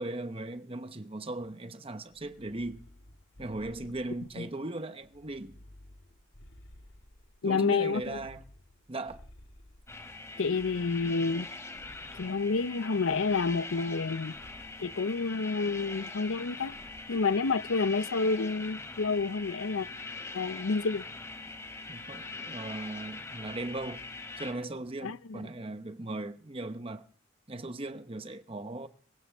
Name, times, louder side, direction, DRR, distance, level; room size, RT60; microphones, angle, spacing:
voice 1, 0.0-2.9 3.4-5.6 7.4-8.4 8.9-9.2 21.9-24.1 24.4-27.1 27.5-28.9, right 2 dB, 30° right, 0.9 m, -38 dB
sound 1, 2.1-4.5 5.0-7.4 7.9-10.1 10.6-12.4 13.1-14.0 14.3-14.8 15.7-16.4 16.7-17.2, left 1 dB, 60° left, 2.1 m, -55 dB
voice 2, 7.4-8.2 10.4-11.5 12.2-14.3 14.8-16.8 17.1-19.9 20.3-21.1 25.0-25.4, left 4 dB, 80° left, 0.7 m, -29 dB
sound 2, 9.9-24.5, left 3 dB, 15° left, 3.1 m, -42 dB
24.5 x 15.0 x 3.5 m
head